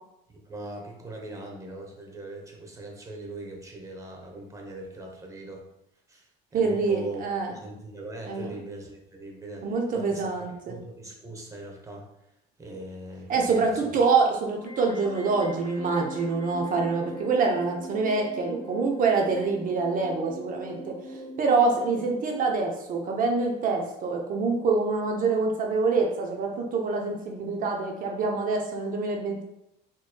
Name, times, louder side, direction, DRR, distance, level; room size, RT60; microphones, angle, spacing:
voice 1, 0.3-5.6 6.1-9.7 9.9-12.1 12.6-13.9, right 2 dB, 15° right, 0 dB, 0.8 m, -41 dB
voice 2, 6.5-7.6 8.3-8.5 9.6-10.8 13.3-29.4, right 4 dB, 45° right, 1 dB, 0.7 m, -26 dB
sound 1, 14.5-22.5, right 1 dB, 20° left, 0.4 m, -40 dB
4.4 x 3.0 x 2.2 m, 0.83 s
cardioid pair, 120°, 20 cm